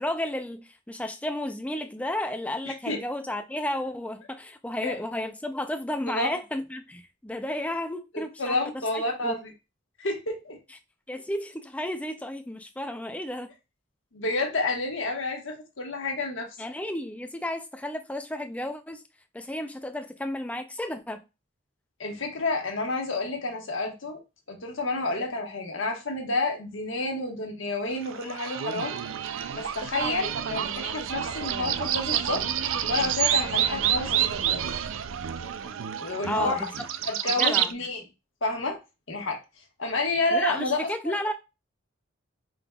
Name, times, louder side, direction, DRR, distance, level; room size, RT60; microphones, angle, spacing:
voice 1, 0.0-9.4 11.1-13.5 16.6-19.0 19.3-21.2 36.3-36.9 37.4-37.7 40.3-41.3, left 1 dB, 5° left, 0.4 m, -32 dB
voice 2, 2.6-3.0 4.8-4.9 6.1-6.3 8.4-9.5 10.0-10.6 14.1-16.5 22.0-24.2 24.5-29.0 29.5-32.4 32.9-34.6 36.0-36.7 37.1-38.0 38.4-38.8 39.1-39.4 39.8-41.1, left 2 dB, 65° left, 1.3 m, -29 dB
sound 1, 28.0-37.7, right 10 dB, 75° right, 0.4 m, -28 dB
5.2 x 3.8 x 2.3 m
head